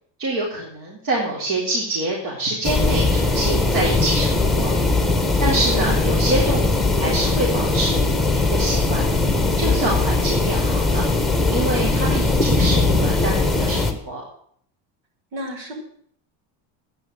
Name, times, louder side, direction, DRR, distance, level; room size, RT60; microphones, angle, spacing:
voice 1, 0.2-4.7 5.4-9.1 9.6-11.0 11.5-14.2, right 2 dB, 45° right, -3 dB, 3.9 m, -26 dB
sound 1, 2.6-13.9, left 3 dB, ahead, 1.6 m, -20 dB
voice 2, 15.3-15.7, equal, 65° right, 0 dB, 6.4 m, -34 dB
11.0 x 9.6 x 9.4 m, 0.64 s
cardioid pair, 145°, 46 cm